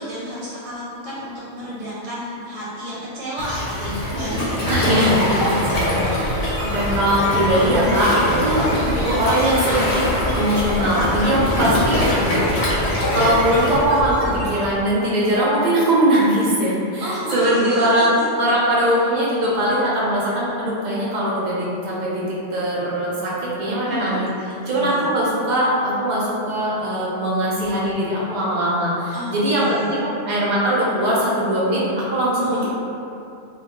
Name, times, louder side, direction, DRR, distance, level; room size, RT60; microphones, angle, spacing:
voice 1, 0.0-4.9 8.7-9.2 11.5-12.7 17.0-18.3 23.9-24.2 24.7-25.0 29.1-29.9 32.4-32.7, equal, 85° right, -9 dB, 0.9 m, -31 dB
Waves surf, 3.4-13.8, left 1 dB, 60° left, 0.7 m, -23 dB
voice 2, 4.7-8.6 8.9-10.0 10.3-12.0 12.6-12.7 13.1-17.1 17.3-24.3 24.7-32.7, right 1 dB, 65° right, -7 dB, 0.4 m, -21 dB
sound 1, 5.7-14.8, left 1 dB, 90° left, 0.9 m, -28 dB
2.2 x 2.1 x 2.9 m, 2.7 s
omnidirectional pair, 1.3 m